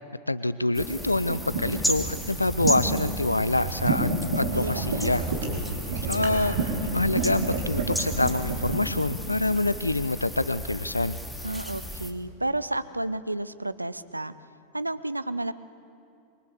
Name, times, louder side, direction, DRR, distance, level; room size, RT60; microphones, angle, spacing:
voice 1, 0.3-5.2 6.1-6.6 6.9-11.2, left 2 dB, 85° left, 16 dB, 0.5 m, -26 dB
sound 1, 0.7-12.1, left 1 dB, 5° left, 2.5 m, -35 dB
sound 2, 0.8-8.8, right 3 dB, 65° right, 4.3 m, -30 dB
voice 2, 4.5-5.1 11.4-14.3 14.7-15.5, right 2 dB, 85° right, 15 dB, 0.7 m, -31 dB
26.0 x 23.5 x 8.1 m, 2.6 s
figure-of-eight pair, 90°, 0 cm